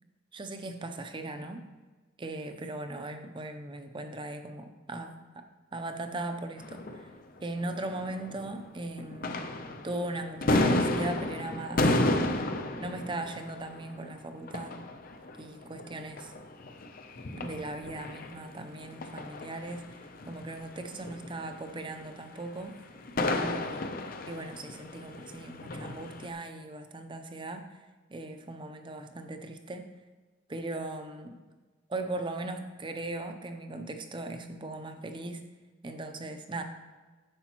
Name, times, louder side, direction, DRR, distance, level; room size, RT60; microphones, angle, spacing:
voice 1, 0.3-1.6 2.2-7.1 7.4-9.4 9.8-12.5 12.8-14.8 15.4-16.3 17.3-19.9 20.2-22.8 23.3-23.9 24.3-27.8 28.1-29.9 30.5-31.4 31.9-35.5 35.8-36.6, right 2 dB, 25° right, 7 dB, 0.5 m, -38 dB
sound 1, 6.6-8.7 9.0-26.3, left 2 dB, 45° left, 0.6 m, -33 dB
9.8 x 6.8 x 3.0 m, 1.3 s
head